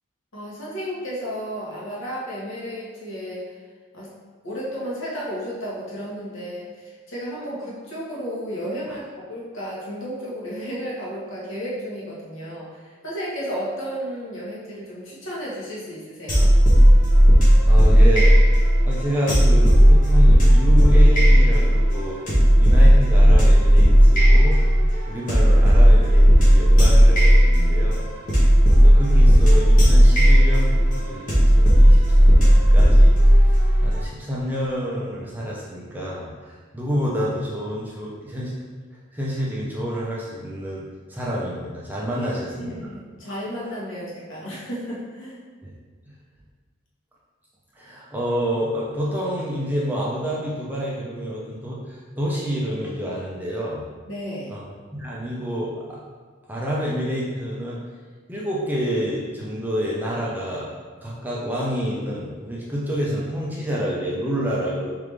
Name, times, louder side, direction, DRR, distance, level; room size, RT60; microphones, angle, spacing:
voice 1, 0.3-3.5 3.9-4.1 4.4-16.5 42.1-42.3 42.5-45.4 54.1-54.6, equal, 70° left, -6 dB, 1.3 m, -33 dB
sound 1, 16.3-34.0, equal, 40° left, 1.2 m, -14 dB
voice 2, 17.7-18.3 18.8-22.2 22.6-24.6 25.1-28.1 28.8-38.5 39.1-42.7 47.8-53.8 54.5-54.7 54.9-56.0 56.5-57.8 58.3-60.7 61.0-64.9, equal, 10° right, -5 dB, 0.5 m, -28 dB
3.8 x 3.3 x 3.4 m, 1.5 s
head